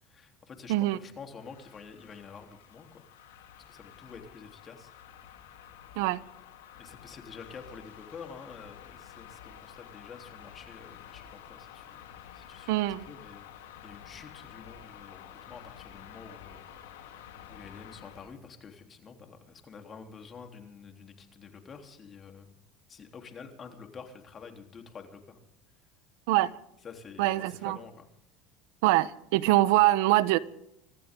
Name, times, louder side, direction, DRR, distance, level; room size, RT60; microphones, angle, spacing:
voice 1, 0.0-3.0 3.7-4.9 5.2-5.6 6.8-22.6 22.9-25.4 26.8-28.1, left 5 dB, 30° left, 3.5 m, -48 dB
sound 1, 1.3-18.4, left 10 dB, 90° left, 3.2 m, -50 dB
voice 2, 12.7-13.1 26.3-26.5 27.2-27.8 28.8-30.4, right 17 dB, 75° right, 0.9 m, -24 dB
25.5 x 14.0 x 3.8 m
supercardioid pair, 110°, 0 cm